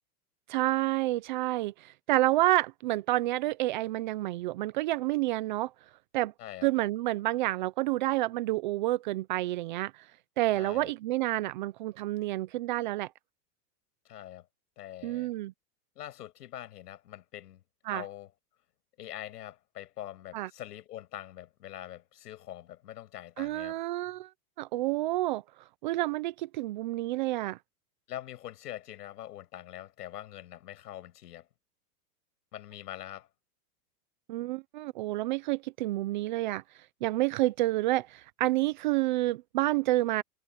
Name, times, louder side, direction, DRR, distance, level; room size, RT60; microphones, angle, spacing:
voice 1, 0.5-5.7 6.1-6.3 6.6-10.1 10.4-13.1 15.0-15.5 17.9-18.0 20.3-20.5 23.4-24.3 24.6-25.4 25.8-27.6 34.3-36.6 37.0-40.2, right 17 dB, 35° right, 0.4 m, -29 dB
voice 2, 10.5-10.9 14.0-14.5 14.8-15.3 16.0-17.6 17.9-18.3 19.0-23.8 28.1-31.5 32.5-33.3, left 12 dB, 80° left, 8.0 m, -44 dB
supercardioid pair, 155°, 47 cm